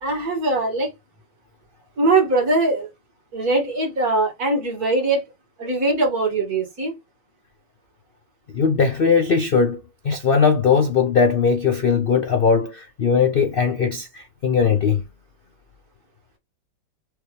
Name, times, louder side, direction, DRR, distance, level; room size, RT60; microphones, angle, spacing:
voice 1, 0.0-0.9 2.0-2.9 3.3-5.2 5.6-6.9, right 2 dB, 55° right, 2.6 m, -21 dB
voice 2, 8.5-9.8 10.0-15.0, left 6 dB, 65° left, 0.5 m, -19 dB
4.8 x 3.4 x 3.2 m
omnidirectional pair, 1.9 m